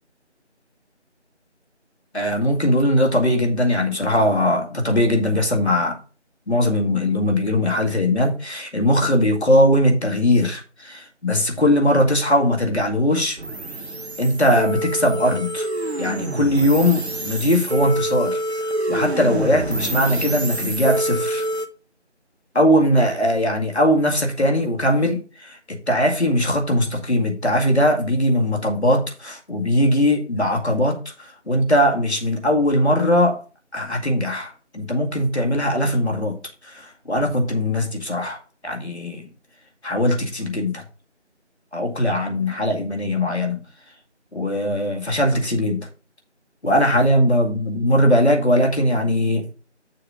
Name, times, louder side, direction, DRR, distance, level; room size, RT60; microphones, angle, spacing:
voice 1, 2.1-6.0 6.5-13.4 14.2-15.7 16.0-18.4 18.9-21.4 22.5-33.4 33.7-36.4 36.6-38.4 38.6-39.2 39.8-40.8 41.7-43.6 44.3-45.9 46.6-49.5, left 1 dB, 65° left, 2 dB, 2.0 m, -20 dB
sound 1, 13.4-21.7, right 1 dB, 65° right, 1.0 m, -26 dB
6.6 x 4.1 x 6.3 m, 0.36 s
figure-of-eight pair, 175°, 35 cm